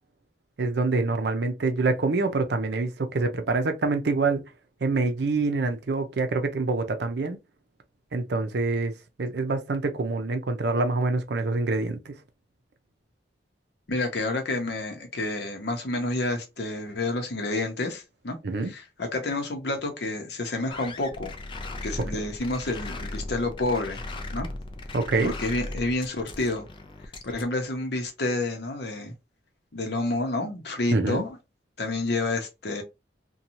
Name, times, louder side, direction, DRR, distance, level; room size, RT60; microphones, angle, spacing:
voice 1, 0.6-4.4 4.8-7.4 8.1-8.9 9.2-12.1 18.4-18.7 22.1-22.2 24.9-25.3 30.9-31.3, right 3 dB, 65° right, 0.5 m, -26 dB
voice 2, 13.9-18.4 18.7-21.3 21.8-24.0 24.3-24.5 25.2-26.7 27.2-29.1 29.7-31.4 31.8-32.8, left 2 dB, 65° left, 0.8 m, -29 dB
sound 1, 20.7-27.4, left 2 dB, 30° left, 0.4 m, -37 dB
2.7 x 2.3 x 2.8 m
head